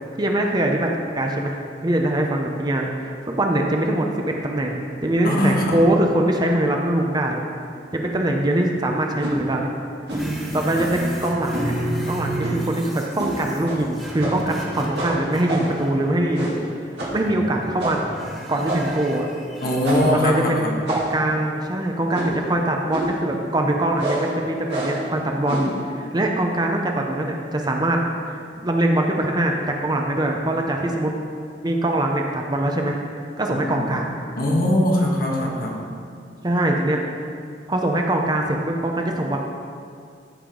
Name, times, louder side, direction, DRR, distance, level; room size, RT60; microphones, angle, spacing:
voice 1, 0.2-7.5 7.9-9.8 10.5-11.7 12.1-16.5 17.1-18.0 18.5-19.3 20.1-28.0 28.3-31.1 31.6-33.0 33.4-34.1 36.4-37.0 37.7-39.4, right 1 dB, 25° right, 2 dB, 0.6 m, -23 dB
voice 2, 5.2-5.8 19.6-20.8 33.5-33.9 34.4-35.8, left 1 dB, 55° left, -2 dB, 1.5 m, -21 dB
sound 1, 9.2-9.4 10.1-10.3 10.7-11.0 11.5-11.7 12.4-12.7 13.2-13.4 13.6-13.8 14.2-14.5 15.0-15.8 16.3-16.7 17.0-17.2 17.8-18.1 18.6-19.0 19.8-20.2 20.9-21.3 22.1-22.4 22.9-23.2 24.0-24.3 24.7-25.1 25.5-25.8, right 1 dB, 70° right, 2.3 m, -28 dB
sound 2, 10.1-16.5 17.0-17.6 18.1-20.1, right 1 dB, ahead, 1.0 m, -32 dB
14.0 x 5.1 x 3.8 m, 2.3 s
head